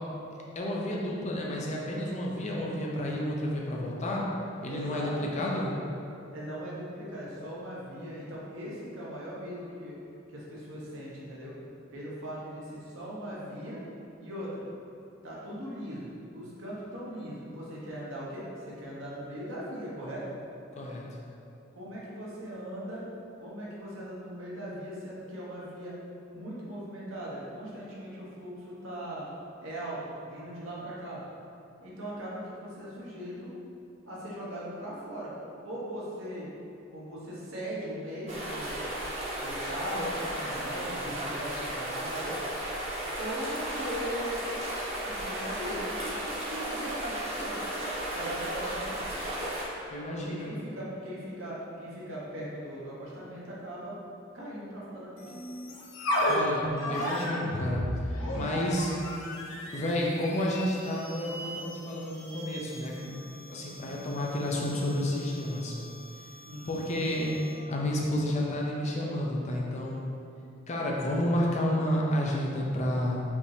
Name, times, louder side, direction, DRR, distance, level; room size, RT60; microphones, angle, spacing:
voice 1, 0.4-4.3 4.6-5.7 20.8-21.2 49.9-50.5 56.3-57.9 58.3-58.9 59.7-63.2 63.5-65.8 66.7-67.3 67.7-70.0 70.7-73.2, left 1 dB, 35° left, -3 dB, 0.6 m, -30 dB
voice 2, 4.6-5.5 6.3-10.0 10.3-11.5 11.9-13.8 14.2-14.7 15.2-20.2 21.7-23.0 23.4-25.9 26.3-29.3 29.6-31.2 31.8-33.5 34.1-35.3 35.6-36.5 36.9-38.8 39.4-42.3 43.2-44.5 45.0-47.6 48.1-49.0 50.1-53.9 54.3-55.3 66.4-66.8, equal, 80° right, -6 dB, 1.1 m, -39 dB
sound 1, 38.3-49.6, right 1 dB, 35° right, 0.9 m, -34 dB
sound 2, 55.2-67.7, equal, 80° left, 0.8 m, -36 dB
5.1 x 2.9 x 3.2 m, 2.6 s
head